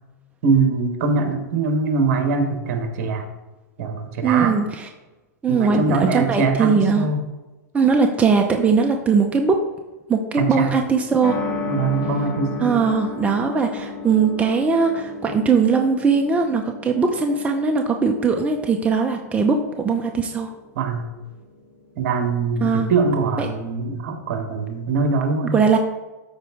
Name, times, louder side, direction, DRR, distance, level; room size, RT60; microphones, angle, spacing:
voice 1, 0.4-3.3 3.8-4.5 5.5-7.2 10.4-10.7 11.7-12.8 20.7-21.1 22.0-25.6, right 4 dB, 60° right, 6 dB, 1.5 m, -22 dB
voice 2, 4.2-4.9 5.4-7.1 7.7-9.6 10.1-11.4 12.6-20.5 22.6-22.9 23.4-23.5 25.4-25.8, right 5 dB, 15° right, 3 dB, 0.7 m, -20 dB
sound 1, 11.2-22.1, left 4 dB, 60° left, 2.0 m, -34 dB
13.0 x 4.4 x 3.7 m, 1.1 s
hypercardioid pair, 125°, 9 cm